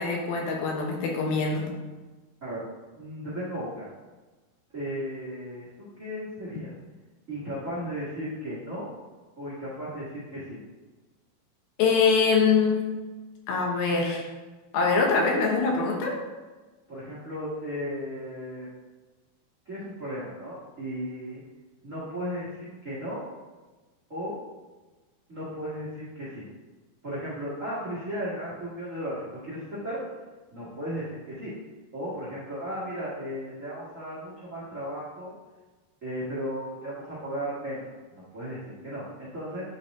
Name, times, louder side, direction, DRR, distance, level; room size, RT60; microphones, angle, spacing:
voice 1, 0.0-1.7 11.8-12.8 13.5-14.3 14.7-16.1, left 4 dB, 70° left, 0 dB, 2.8 m, -23 dB
voice 2, 2.9-3.9 4.7-6.7 7.3-8.9 9.4-10.6 16.9-18.7 19.6-21.4 21.8-23.2 24.1-24.4 25.3-26.5 27.0-30.0 30.5-31.5 31.9-35.3 36.0-39.6, equal, 55° right, -8 dB, 0.8 m, -35 dB
10.5 x 4.2 x 3.7 m, 1.2 s
omnidirectional pair, 4.6 m